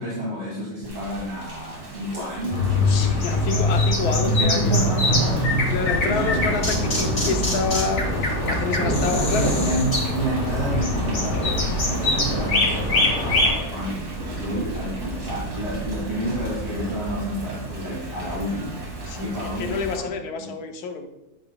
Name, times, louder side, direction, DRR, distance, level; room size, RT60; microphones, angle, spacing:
voice 1, 0.0-3.7 4.0-5.7 6.1-6.5 7.1-7.2 8.9-11.6 11.8-18.8 19.2-20.1 20.4-20.5, right 1 dB, 40° right, -8 dB, 2.5 m, -30 dB
Thunder / Rain, 0.8-20.0, right 1 dB, 60° right, 2.5 m, -31 dB
sound 1, 2.5-13.5, left 1 dB, 70° left, 3.0 m, -23 dB
voice 2, 2.7-5.0 5.7-9.5 19.1-19.3 19.6-21.1, left 5 dB, 90° left, 6 dB, 1.3 m, -28 dB
10.5 x 6.8 x 2.3 m, 0.92 s
omnidirectional pair, 1.6 m